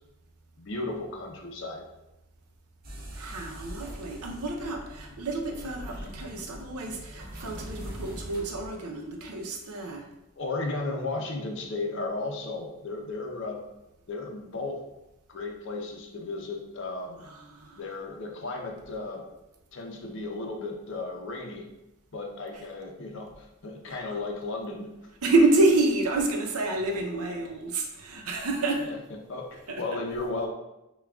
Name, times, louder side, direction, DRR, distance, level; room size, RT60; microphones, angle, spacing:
voice 1, 0.6-1.8 10.4-13.6 14.1-14.8 15.3-17.2 17.8-19.2 19.7-21.7 22.1-24.9 28.8-29.0 29.3-29.5 29.8-30.5, left 3 dB, 55° left, 2 dB, 0.6 m, -34 dB
sound 1, 2.8-8.7, equal, 45° right, 0.8 m, -42 dB
voice 2, 3.2-10.0 17.5-17.8 25.2-28.9 29.7-29.8, right 2 dB, 85° right, 2 dB, 0.6 m, -28 dB
5.8 x 2.3 x 2.3 m, 0.93 s
head